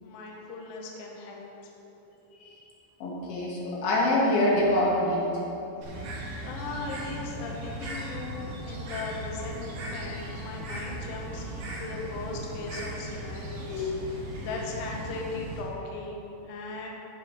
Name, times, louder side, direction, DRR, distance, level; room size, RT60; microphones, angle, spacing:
voice 1, 0.0-1.5 5.8-11.5 11.8-16.9, left 3 dB, 75° left, -1 dB, 2.1 m, -38 dB
voice 2, 3.0-5.2 13.7-13.9, left 1 dB, 60° left, -5 dB, 3.7 m, -25 dB
Bird, 5.8-15.6, right 1 dB, 60° right, 3.8 m, -37 dB
15.5 x 10.5 x 3.2 m, 2.9 s
omnidirectional pair, 5.6 m